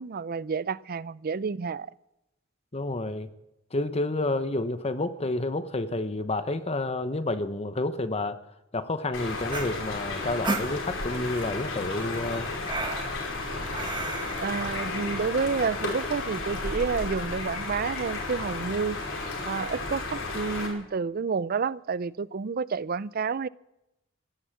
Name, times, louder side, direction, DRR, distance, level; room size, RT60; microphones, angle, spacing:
voice 1, 0.0-1.9 14.4-19.0 19.4-23.5, right 5 dB, 50° right, 0.5 m, -29 dB
voice 2, 2.7-3.3 3.7-8.4 8.7-12.5, left 2 dB, 30° left, 0.9 m, -29 dB
sound 1, 9.1-20.7, left 3 dB, 85° left, 5.1 m, -33 dB
sound 2, 9.4-11.2 11.9-14.5, right 2 dB, 25° right, 1.7 m, -34 dB
16.5 x 11.0 x 7.1 m
head